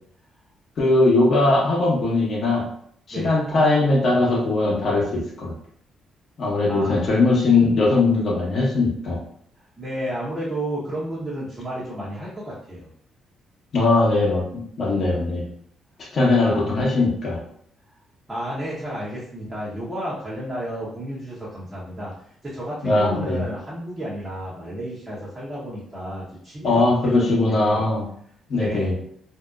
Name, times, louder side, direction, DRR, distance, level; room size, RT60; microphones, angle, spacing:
voice 1, 0.8-2.6 3.1-5.5 6.4-9.2 13.7-15.4 16.0-17.4 22.8-23.4 26.6-28.1 28.5-28.9, left 2 dB, 50° left, -3 dB, 0.9 m, -20 dB
voice 2, 6.7-7.1 9.8-12.9 16.3-16.8 18.3-22.1 22.4-27.8 28.5-29.0, equal, 20° right, -9 dB, 0.9 m, -32 dB
2.7 x 2.0 x 2.3 m, 0.65 s
cardioid pair, 90°, 0 cm